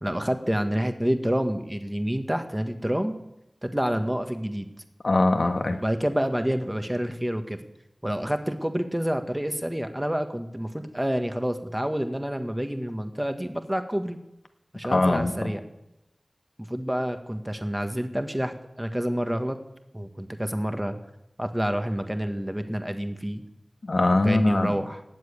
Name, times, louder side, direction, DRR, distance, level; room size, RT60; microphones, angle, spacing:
voice 1, 0.0-3.1 3.6-4.7 5.7-7.6 8.0-14.2 14.7-15.6 16.7-19.6 19.9-21.0 21.4-23.4 24.2-25.0, equal, 10° right, 7 dB, 1.4 m, -28 dB
voice 2, 5.0-5.8 14.8-15.5 23.8-24.7, left 2 dB, 70° left, 6 dB, 1.5 m, -22 dB
18.0 x 7.5 x 8.7 m, 0.89 s
wide cardioid pair, 65°, 0 cm